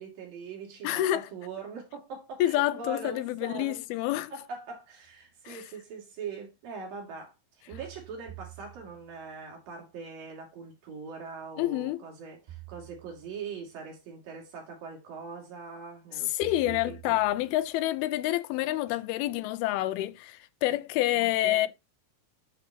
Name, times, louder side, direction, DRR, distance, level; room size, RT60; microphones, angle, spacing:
voice 1, 0.0-3.9 4.3-7.3 7.7-16.8 17.1-17.2 21.1-21.7, right 5 dB, 65° right, 4.3 m, -42 dB
voice 2, 0.8-1.3 2.4-4.3 5.5-5.6 11.6-12.0 16.3-21.7, left 15 dB, 90° left, 2.5 m, -28 dB
sound 1, 5.1-5.2 7.7-9.3 12.5-13.6 16.4-17.7, right 16 dB, 85° right, 3.3 m, -48 dB
11.0 x 4.0 x 2.8 m
omnidirectional pair, 4.3 m